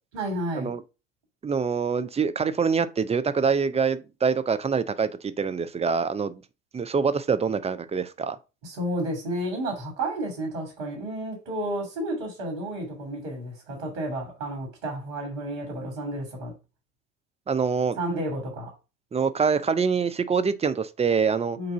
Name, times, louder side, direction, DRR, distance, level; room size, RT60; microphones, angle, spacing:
voice 1, 0.1-0.7 8.6-16.5 18.0-18.7 21.6-21.7, right 1 dB, 75° right, 2.7 m, -31 dB
voice 2, 1.4-6.4 6.7-8.4 17.5-18.0 19.1-21.6, right 5 dB, 15° right, 0.6 m, -25 dB
6.8 x 2.7 x 5.6 m
hypercardioid pair, 75°, 36 cm